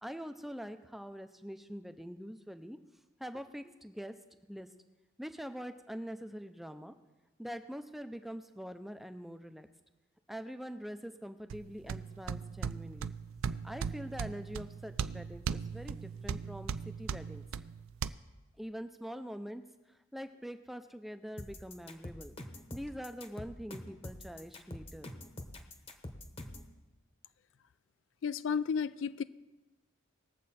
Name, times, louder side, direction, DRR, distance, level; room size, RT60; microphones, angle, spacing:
voice 1, 0.0-2.8 3.2-4.7 5.2-6.9 7.4-9.7 10.3-13.1 13.6-17.4 18.6-19.6 19.9-22.3 22.7-25.1, equal, ahead, 0.5 m, -44 dB
sound 1, 11.5-18.1, right 6 dB, 75° right, 0.4 m, -38 dB
sound 2, 21.4-26.7, left 1 dB, 25° left, 0.9 m, -45 dB
voice 2, 28.2-29.2, left 6 dB, 60° left, 0.4 m, -32 dB
20.0 x 7.5 x 4.2 m
head